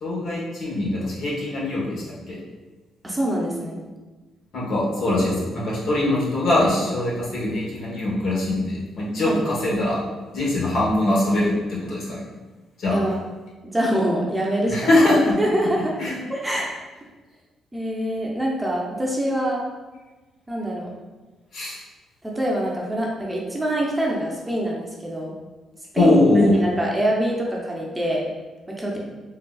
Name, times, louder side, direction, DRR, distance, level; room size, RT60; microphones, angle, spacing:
voice 1, 0.0-2.4 4.5-10.0 10.3-12.2 12.8-13.0 14.7-15.3 16.0-16.2 21.5-21.8 26.0-26.6, left 1 dB, 70° left, -5 dB, 1.0 m, -22 dB
voice 2, 3.0-3.8 9.2-9.4 12.9-13.2 13.7-15.0 15.4-15.9 16.3-16.7 17.7-19.6 20.5-20.9 22.2-25.3 25.9-26.2 26.5-28.2 28.7-29.0, right 1 dB, 15° right, -3 dB, 0.6 m, -25 dB
3.7 x 2.4 x 2.3 m, 1.2 s
cardioid pair, 95°, 0 cm